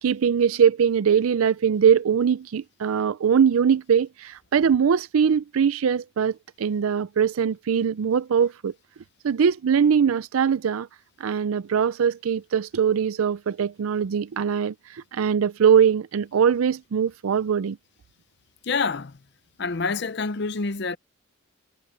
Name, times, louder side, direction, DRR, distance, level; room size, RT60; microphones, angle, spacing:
voice 1, 0.0-8.7 9.2-10.9 11.2-17.8, right 7 dB, 90° right, 0.4 m, -22 dB
voice 2, 18.6-19.2 19.6-21.0, left 4 dB, 55° left, 0.6 m, -27 dB
head